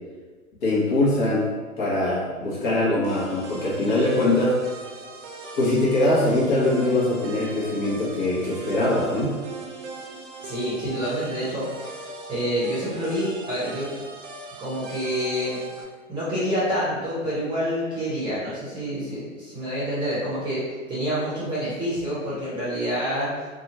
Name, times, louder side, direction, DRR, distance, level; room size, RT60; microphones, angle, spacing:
voice 1, 0.6-1.5 1.8-4.6 5.6-9.3, left 1 dB, 35° left, -6 dB, 1.0 m, -22 dB
sound 1, 3.0-15.8, right 3 dB, 55° right, 0.6 m, -39 dB
voice 2, 10.4-12.0 12.3-13.9 14.6-15.6 16.1-20.6 20.9-23.5, equal, 10° right, -10 dB, 0.9 m, -27 dB
2.7 x 2.4 x 2.8 m, 1.4 s
hypercardioid pair, 120°, 41 cm